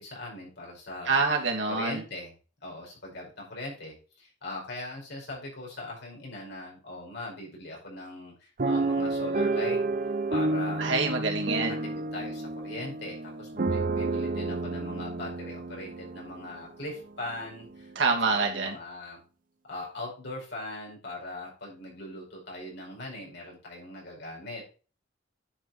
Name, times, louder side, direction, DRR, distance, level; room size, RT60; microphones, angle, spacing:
voice 1, 0.0-1.2 1.7-2.3 2.6-9.8 10.3-11.0 11.5-17.9 18.2-19.2 19.6-24.7, left 2 dB, 65° left, -2 dB, 5.2 m, -40 dB
voice 2, 1.1-2.0 10.8-11.8 18.0-18.7, right 4 dB, 80° right, 0 dB, 2.5 m, -26 dB
sound 1, 8.6-16.7 17.3-17.4 17.7-17.9, right 2 dB, 45° right, 0.6 m, -30 dB
9.9 x 5.5 x 4.3 m, 0.36 s
head